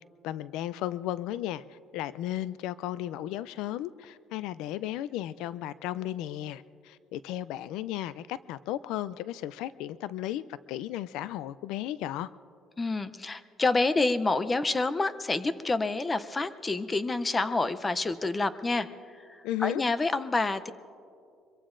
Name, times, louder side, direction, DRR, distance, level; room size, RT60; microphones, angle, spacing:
voice 1, 0.2-12.3 19.4-19.8, left 13 dB, 85° left, 17 dB, 0.3 m, -34 dB
voice 2, 12.8-18.9 19.2-20.7, left 3 dB, 15° left, 12 dB, 0.5 m, -28 dB
24.5 x 22.5 x 2.5 m, 2.5 s
cardioid pair, 155°, 0 cm